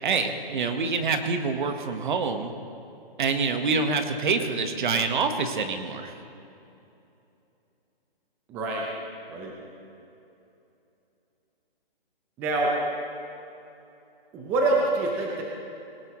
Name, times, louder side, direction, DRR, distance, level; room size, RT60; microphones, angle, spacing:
voice 1, 0.0-2.5 3.2-6.1, right 4 dB, 55° right, 7 dB, 1.4 m, -26 dB
voice 2, 8.5-8.9 9.3-9.6 12.4-12.8 14.3-15.4, right 2 dB, 5° right, -1 dB, 0.5 m, -26 dB
19.0 x 18.0 x 3.1 m, 2.8 s
hypercardioid pair, 155°, 30 cm